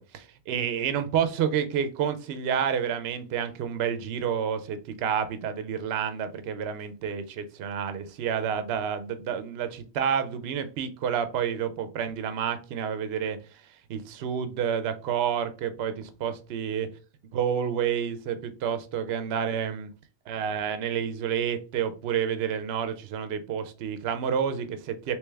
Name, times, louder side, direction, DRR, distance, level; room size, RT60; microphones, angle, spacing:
voice 1, 0.0-13.4 13.9-16.9 17.3-19.9 20.3-25.2, right 8 dB, 70° right, 0.8 m, -29 dB
3.3 x 3.0 x 3.3 m
omnidirectional pair, 1.1 m